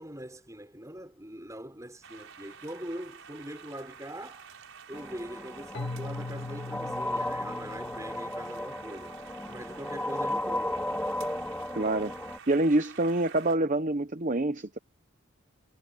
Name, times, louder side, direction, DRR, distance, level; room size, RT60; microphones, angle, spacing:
voice 1, 0.0-4.5 4.9-9.2 9.5-10.9, right 1 dB, 15° right, 5.8 m, -42 dB
sound 1, 2.0-13.6, right 6 dB, 65° right, 6.0 m, -49 dB
sound 2, 4.9-12.4, left 1 dB, 5° left, 3.4 m, -35 dB
Keyboard (musical), 5.7-8.7, left 2 dB, 50° left, 2.1 m, -40 dB
voice 2, 11.7-12.1 12.5-14.8, right 2 dB, 35° right, 0.9 m, -26 dB
head